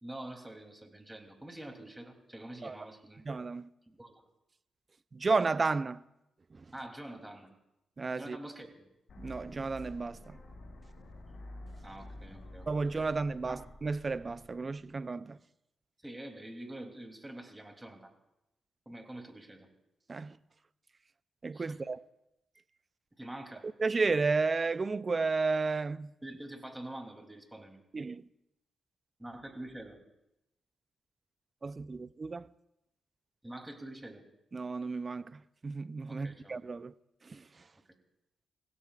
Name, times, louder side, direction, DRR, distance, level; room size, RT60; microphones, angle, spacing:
voice 1, 0.0-3.2 4.0-4.2 6.7-7.5 8.2-8.9 11.8-13.6 16.0-18.1 18.9-19.7 21.5-21.8 23.2-23.7 26.2-27.8 29.2-30.0 33.4-34.2 36.1-36.6, right 1 dB, 10° right, 3.0 m, -46 dB
voice 2, 3.3-3.7 5.1-6.0 6.6-6.7 8.0-8.4 9.2-10.4 12.7-15.4 20.1-20.4 21.4-22.0 23.6-26.1 27.9-28.2 31.6-32.5 34.5-36.9 37.2-37.4, right 4 dB, 40° right, 0.5 m, -32 dB
sound 1, 9.1-15.1, left 1 dB, 60° left, 6.1 m, -50 dB
30.0 x 16.5 x 2.5 m
cardioid pair, 65°, 0 cm